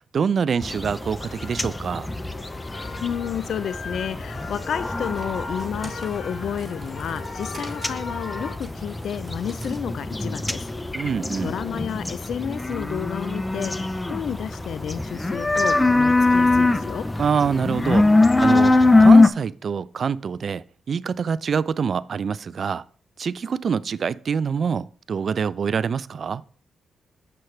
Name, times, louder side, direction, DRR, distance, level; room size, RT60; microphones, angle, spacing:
voice 1, 0.1-2.1 10.9-11.5 17.2-18.1 18.4-18.7 19.0-22.8 23.2-26.4, right 6 dB, 60° right, 0.3 m, -25 dB
sound 1, 0.6-19.3, left 2 dB, 15° left, 0.6 m, -22 dB
sound 2, 1.2-8.5, left 3 dB, 55° left, 1.3 m, -38 dB
voice 2, 3.0-10.7 11.4-17.1, left 8 dB, 70° left, 0.3 m, -31 dB
sound 3, 5.2-10.3, right 3 dB, 35° right, 2.7 m, -45 dB
7.8 x 5.7 x 3.2 m
cardioid pair, 65°, 0 cm